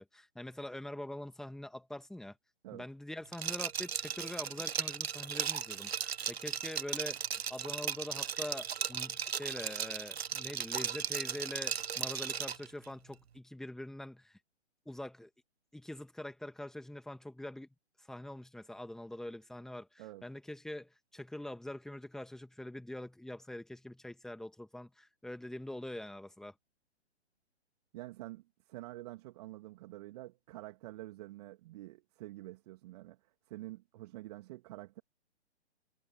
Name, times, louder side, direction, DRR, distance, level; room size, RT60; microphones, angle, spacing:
voice 1, 0.0-2.4 2.7-5.9 6.3-7.2 7.5-14.4 14.9-15.3 15.7-17.7 18.1-26.5, left 1 dB, ahead, 2.4 m, -44 dB
Liquid, 3.3-12.7, right 8 dB, 60° right, 1.1 m, -36 dB
voice 2, 27.9-33.2 33.5-35.0, right 17 dB, 35° right, 2.8 m, -47 dB
figure-of-eight pair, 125°, 35 cm